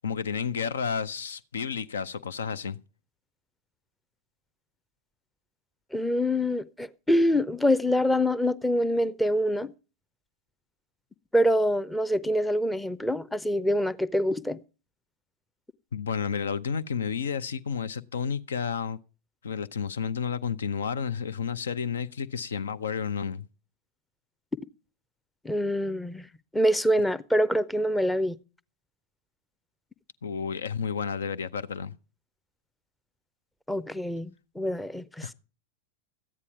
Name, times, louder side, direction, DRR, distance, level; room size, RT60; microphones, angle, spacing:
voice 1, 0.0-2.8 15.9-19.0 19.4-23.5 30.2-31.9 35.2-35.3, left 6 dB, 65° left, 0.7 m, -31 dB
voice 2, 5.9-9.7 11.3-14.6 25.4-26.2 26.5-28.4 33.7-35.3, equal, 5° left, 0.6 m, -25 dB
13.5 x 9.8 x 4.4 m
figure-of-eight pair, 90°, 0 cm